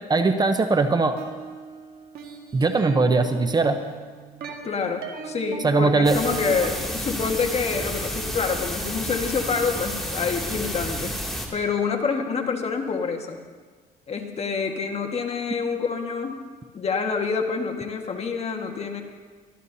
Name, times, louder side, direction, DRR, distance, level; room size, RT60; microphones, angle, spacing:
voice 1, 0.1-1.2 2.5-3.8 5.6-6.2, right 3 dB, 25° right, 8 dB, 0.8 m, -20 dB
sound 1, 1.1-6.7, right 6 dB, 65° right, 1.9 m, -37 dB
voice 2, 4.6-11.2 11.5-13.4 14.1-16.4 16.7-19.0, left 5 dB, 40° left, 3 dB, 1.6 m, -27 dB
sound 2, 6.0-11.5, equal, ahead, 2.5 m, -31 dB
23.5 x 14.0 x 2.8 m, 1.4 s
cardioid pair, 110°, 17 cm